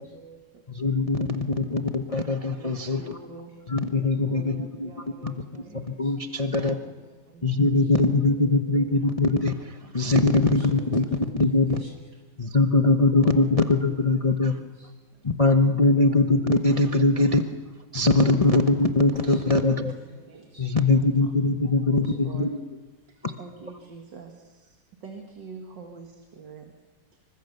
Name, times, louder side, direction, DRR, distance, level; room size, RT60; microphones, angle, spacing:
voice 1, 0.0-0.7 2.5-3.6 4.1-5.8 6.6-6.9 7.3-9.0 10.0-11.3 11.7-12.1 13.4-14.7 16.3-16.4 17.3-17.4 20.3-20.5 21.2-21.3 21.9-22.5 23.1-26.7 27.1-27.2, right 4 dB, 80° right, 3 dB, 2.7 m, -47 dB
voice 2, 0.7-3.2 3.7-4.9 5.2-6.8 7.4-11.8 12.4-14.6 15.2-17.4 17.9-19.9 20.6-22.6 23.2-23.3, left 2 dB, 25° left, 5 dB, 0.8 m, -22 dB
voice 3, 5.6-6.4 6.8-7.5 7.8-7.9 9.8-10.7 11.7-11.9 12.5-12.6 14.1-14.4 14.7-15.2 19.1-19.4 19.7-20.7 22.0-22.1, equal, 65° right, 0 dB, 8.5 m, -55 dB
26.5 x 24.0 x 6.8 m, 1.4 s
omnidirectional pair, 1.9 m